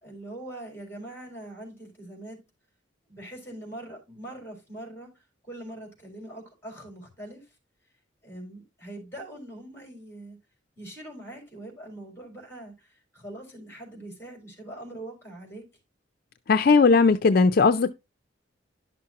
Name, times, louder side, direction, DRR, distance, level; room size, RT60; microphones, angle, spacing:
voice 1, 0.0-2.4 3.1-5.1 5.4-7.4 8.2-10.4 10.8-15.6, right 1 dB, 15° left, 4.2 m, -42 dB
voice 2, 16.5-17.9, left 4 dB, 50° left, 0.4 m, -18 dB
11.0 x 6.1 x 2.8 m
head